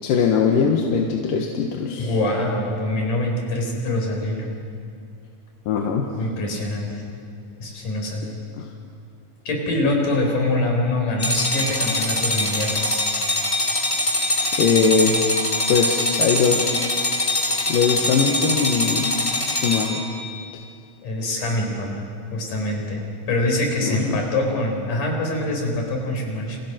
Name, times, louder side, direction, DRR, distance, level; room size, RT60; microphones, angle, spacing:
voice 1, 0.0-2.1 5.7-6.1 8.6-8.7 14.6-15.4 15.7-16.9 17.7-19.1 19.5-20.0 23.8-24.2, left 5 dB, 90° left, 2 dB, 3.1 m, -21 dB
voice 2, 1.9-4.5 6.1-7.0 7.6-8.4 9.5-13.0 21.0-22.0 22.3-23.0 23.3-26.6, left 1 dB, 70° left, 1 dB, 6.2 m, -24 dB
sound 1, 11.2-20.2, left 1 dB, 25° left, 3.2 m, -23 dB
29.5 x 29.5 x 6.1 m, 2.3 s
omnidirectional pair, 3.8 m